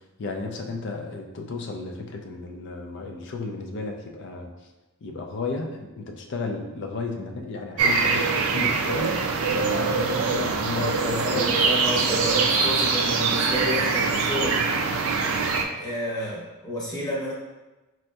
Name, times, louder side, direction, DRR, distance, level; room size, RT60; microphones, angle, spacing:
voice 1, 0.2-4.5 5.0-11.4, left 3 dB, 55° left, 3 dB, 0.4 m, -33 dB
sound 1, 7.8-15.7, right 4 dB, 65° right, 0.3 m, -23 dB
voice 2, 10.7-14.7 15.8-17.3, equal, 20° left, -6 dB, 0.8 m, -30 dB
4.1 x 2.6 x 2.2 m, 1.1 s
head